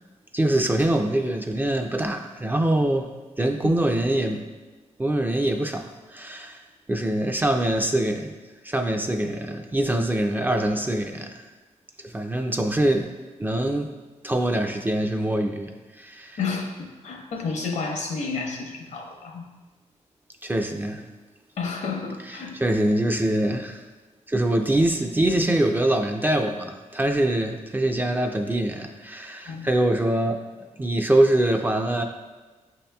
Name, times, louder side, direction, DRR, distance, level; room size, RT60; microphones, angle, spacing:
voice 1, 0.3-3.1 3.4-4.4 5.0-6.6 6.9-8.3 8.6-11.5 12.0-13.1 13.4-13.9 14.2-16.4 20.4-21.1 22.3-23.9 24.3-30.4 30.8-32.0, right 1 dB, 15° right, 4 dB, 0.3 m, -24 dB
voice 2, 16.4-19.4 21.6-22.6 29.5-29.7, left 4 dB, 70° left, 2 dB, 0.7 m, -31 dB
8.1 x 2.8 x 2.2 m, 1.3 s
cardioid pair, 95°, 12 cm